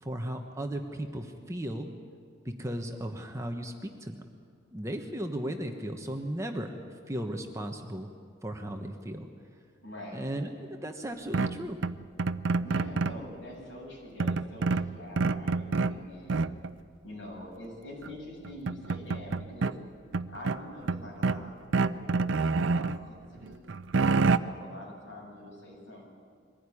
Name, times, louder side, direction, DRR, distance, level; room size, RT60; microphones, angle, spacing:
voice 1, 0.0-1.9 2.4-4.2 4.7-6.7 7.1-8.1 8.4-9.3 10.1-10.5 10.8-11.8, right 1 dB, 15° right, 4 dB, 1.2 m, -36 dB
voice 2, 9.8-10.3 12.6-16.4 17.0-19.8 20.3-22.2 22.7-23.6 24.2-26.0, left 1 dB, 90° left, -2 dB, 7.9 m, -45 dB
sound 1, 11.3-13.3 14.2-16.0 16.3-16.7 18.0-18.1 18.4-19.7 20.1-21.4 21.7-23.0 23.4-24.4, right 4 dB, 75° right, 0.6 m, -27 dB
22.5 x 15.5 x 9.9 m, 2.1 s
head